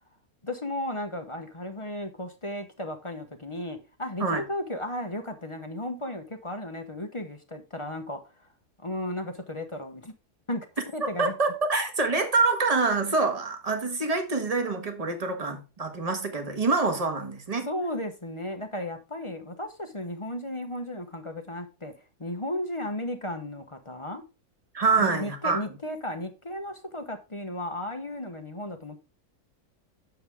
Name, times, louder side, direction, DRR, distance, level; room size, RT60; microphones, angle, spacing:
voice 1, 0.4-8.2 8.8-10.1 10.5-11.3 17.7-21.9 22.2-24.2 25.0-29.0, left 1 dB, 25° left, 0.9 m, -34 dB
voice 2, 11.0-17.7 24.7-25.6, right 3 dB, 25° right, 1.5 m, -26 dB
8.8 x 7.1 x 3.6 m
omnidirectional pair, 1.6 m